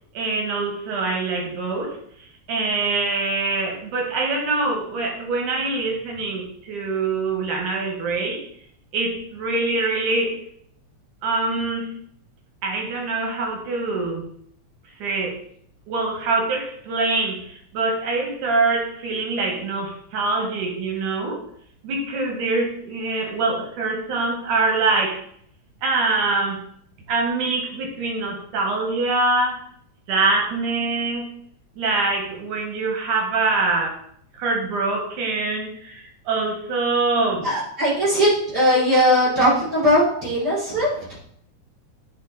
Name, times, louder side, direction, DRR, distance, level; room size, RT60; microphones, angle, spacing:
voice 1, 0.1-2.0 2.5-8.4 8.9-10.4 11.2-11.9 12.6-14.3 15.0-15.4 15.9-21.4 21.8-25.2 25.8-26.6 27.1-29.6 30.1-31.3 31.8-34.0 34.3-37.5, right 3 dB, 90° right, 2 dB, 3.2 m, -24 dB
voice 2, 37.4-41.0, equal, 30° right, -7 dB, 4.3 m, -19 dB
9.5 x 5.3 x 4.1 m, 0.65 s
omnidirectional pair, 3.4 m